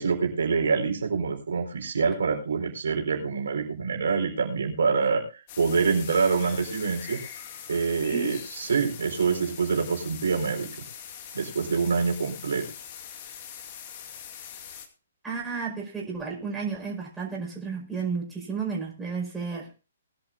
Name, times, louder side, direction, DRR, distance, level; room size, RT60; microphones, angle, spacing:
voice 1, 0.0-7.2 7.7-10.7 11.3-12.7, right 5 dB, 65° right, 1 dB, 4.1 m, -26 dB
sound 1, 5.5-14.9, left 8 dB, 40° left, 2.2 m, -42 dB
voice 2, 15.2-19.7, right 5 dB, 10° right, -3 dB, 5.0 m, -32 dB
20.5 x 11.0 x 2.6 m, 0.33 s
figure-of-eight pair, 125°, 0 cm